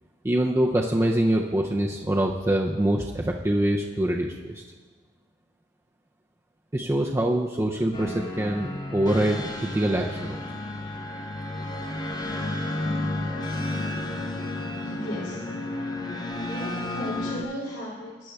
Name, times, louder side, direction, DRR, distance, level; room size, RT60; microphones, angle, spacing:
voice 1, 0.2-4.6 6.7-10.4, right 1 dB, 15° right, -1 dB, 0.4 m, -24 dB
sound 1, 7.9-17.4, left 2 dB, 25° left, 0.7 m, -32 dB
voice 2, 14.8-15.4 16.3-18.3, equal, 70° left, -6 dB, 3.0 m, -36 dB
16.5 x 9.6 x 2.3 m, 1.4 s
head